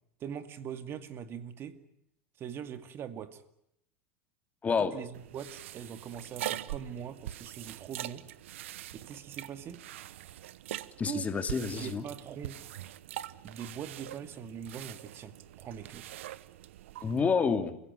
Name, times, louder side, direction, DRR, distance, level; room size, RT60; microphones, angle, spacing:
voice 1, 0.2-1.8 2.4-3.4 4.9-8.3 9.0-9.8 11.0-11.3 11.7-12.6 13.4-16.1, right 8 dB, 35° right, 10 dB, 2.3 m, -42 dB
voice 2, 4.6-5.0 11.0-12.1 17.0-17.8, left 5 dB, 20° left, 8 dB, 2.7 m, -28 dB
sound 1, 5.1-17.2, right 13 dB, 80° right, 1.0 m, -43 dB
29.5 x 16.5 x 9.6 m, 0.78 s
supercardioid pair, 115°, 7 cm